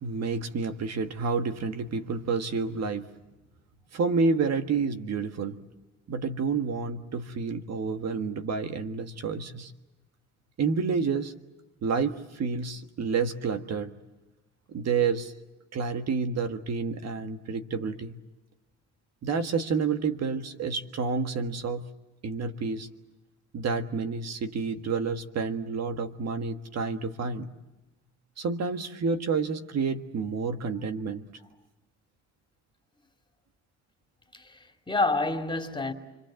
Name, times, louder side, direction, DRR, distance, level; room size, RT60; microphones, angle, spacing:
voice 1, 0.0-3.1 3.9-5.6 6.1-9.7 10.6-11.3 11.8-13.9 14.7-15.3 15.7-18.2 19.2-21.9 22.2-22.9 23.5-27.5 28.4-31.2, right 5 dB, 60° right, 1.5 m, -29 dB
voice 2, 34.3-35.9, left 3 dB, 15° left, 2.8 m, -28 dB
29.0 x 23.5 x 7.6 m
cardioid pair, 90°, 30 cm